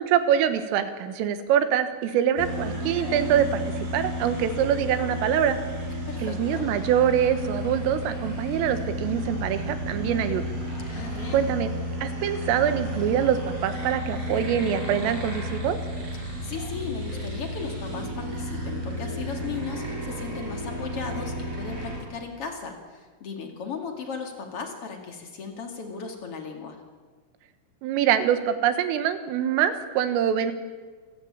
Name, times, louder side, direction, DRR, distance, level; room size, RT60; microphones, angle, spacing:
voice 1, 0.0-5.6 6.2-10.4 11.3-11.7 12.0-15.8 27.8-30.5, right 9 dB, 80° right, 10 dB, 4.0 m, -24 dB
sound 1, 2.4-22.0, equal, 30° right, 8.3 m, -32 dB
voice 2, 6.1-6.7 10.9-11.5 16.2-26.8, left 5 dB, 45° left, 4 dB, 1.9 m, -36 dB
28.0 x 15.5 x 8.8 m, 1.4 s
omnidirectional pair, 6.0 m